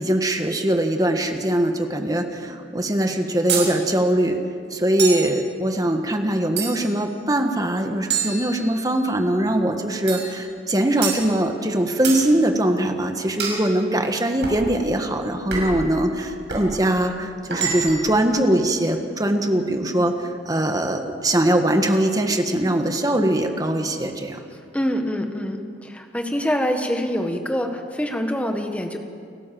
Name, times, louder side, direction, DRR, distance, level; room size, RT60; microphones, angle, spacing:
voice 1, 0.0-4.4 4.7-24.4, right 1 dB, 20° right, 5 dB, 1.5 m, -22 dB
sound 1, 3.5-3.7 5.0-5.3 6.6-7.0 8.1-9.0 10.1-10.4 11.0-11.3 12.0-12.3 13.4-13.6 14.4-14.7 15.5-15.8 16.5-16.7 17.5-18.1, right 6 dB, 75° right, 6.0 m, -27 dB
voice 2, 24.7-29.0, equal, 10° left, 4 dB, 1.5 m, -25 dB
29.5 x 12.5 x 7.6 m, 2.2 s
head